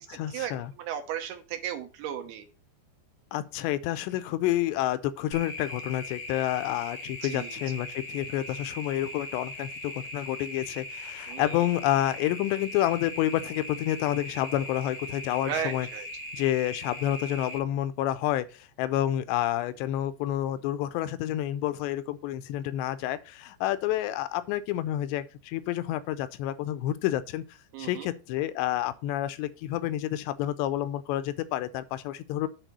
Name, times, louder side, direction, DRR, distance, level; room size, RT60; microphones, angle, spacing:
voice 1, 0.0-0.7 3.3-15.9 16.3-27.4 27.8-32.5, left 13 dB, 85° left, 2.8 m, -29 dB
voice 2, 0.8-2.5 7.2-7.6 11.3-11.6 15.4-16.1 27.7-28.1, right 9 dB, 70° right, 2.9 m, -35 dB
sound 1, 5.3-17.6, left 1 dB, 50° left, 0.8 m, -40 dB
9.1 x 4.3 x 6.7 m
omnidirectional pair, 5.0 m